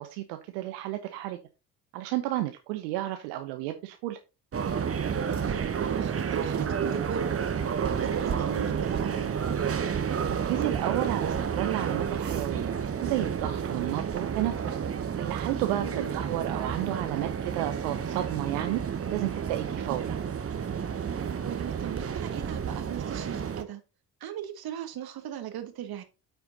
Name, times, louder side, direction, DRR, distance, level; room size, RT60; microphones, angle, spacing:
voice 1, 0.0-1.4 1.9-4.2 10.1-12.7 13.0-14.8 15.2-18.8 19.1-20.2, right 14 dB, 70° right, 0.9 m, -32 dB
sound 1, 4.5-23.6, right 7 dB, 30° right, 1.1 m, -30 dB
voice 2, 5.4-7.4 7.9-9.4 15.8-16.1 21.4-23.8 24.2-26.0, right 10 dB, 50° right, 1.6 m, -38 dB
8.9 x 4.5 x 3.9 m
hypercardioid pair, 55°, 47 cm